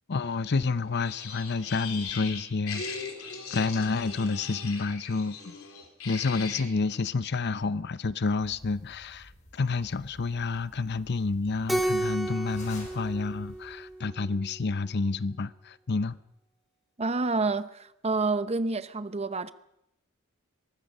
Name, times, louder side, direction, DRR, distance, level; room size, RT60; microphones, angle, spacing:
voice 1, 0.1-2.8 3.5-5.5 6.0-16.2, left 4 dB, 55° left, 0.7 m, -29 dB
sound 1, 1.0-6.6, left 5 dB, 90° left, 3.6 m, -39 dB
sound 2, 8.4-14.0, left 1 dB, 35° left, 6.3 m, -52 dB
Keyboard (musical), 11.7-14.3, right 1 dB, ahead, 2.0 m, -32 dB
voice 2, 17.0-19.5, right 3 dB, 30° right, 0.8 m, -28 dB
23.5 x 20.0 x 5.5 m
head